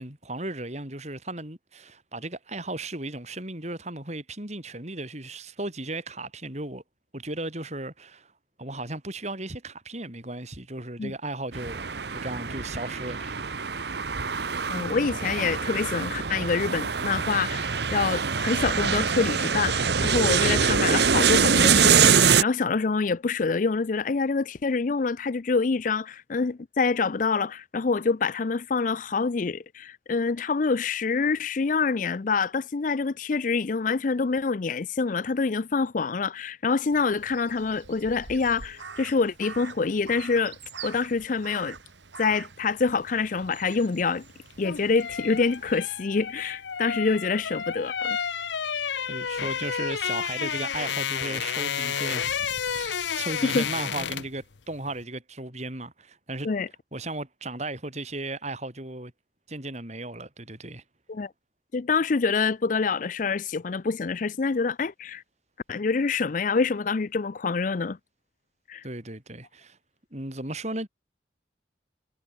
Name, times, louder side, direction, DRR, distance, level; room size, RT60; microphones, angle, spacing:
voice 1, 0.0-6.8 7.1-8.3 8.6-13.3 49.1-56.5 56.9-59.1 59.5-60.8 68.8-69.8 70.1-70.9, right 2 dB, 40° right, 4.5 m, -36 dB
sound 1, 11.5-22.4, right 6 dB, 65° right, 1.1 m, -24 dB
voice 2, 14.7-41.8 42.2-44.2 44.6-48.2 53.4-53.7 56.4-56.7 61.1-61.3 61.7-65.2 65.7-68.0 68.7-68.8, left 4 dB, 45° left, 0.5 m, -26 dB
Crow, 36.9-45.8, right 5 dB, 85° right, 2.1 m, -45 dB
sound 2, 44.4-54.4 54.7-54.9, left 7 dB, 80° left, 0.8 m, -31 dB
head